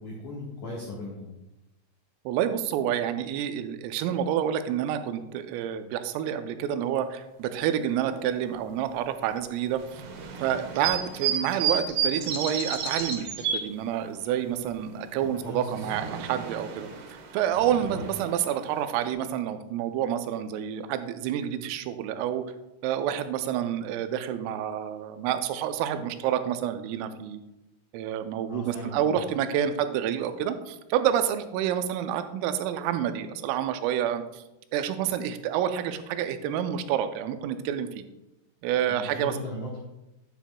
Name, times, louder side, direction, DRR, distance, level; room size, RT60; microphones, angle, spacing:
voice 1, 0.0-1.3 15.4-15.9 17.9-18.0 28.5-29.2 38.9-39.8, left 1 dB, 85° left, -4 dB, 1.7 m, -38 dB
voice 2, 2.3-10.0 10.4-22.4 22.8-27.4 27.9-34.4 34.7-38.0 38.6-39.3, right 10 dB, 90° right, 9 dB, 3.3 m, -28 dB
Taylor Head Nova Scotia, 9.8-13.6 15.3-19.1, right 6 dB, 70° right, 2.7 m, -32 dB
9.4 x 8.9 x 2.2 m, 0.96 s
omnidirectional pair, 5.8 m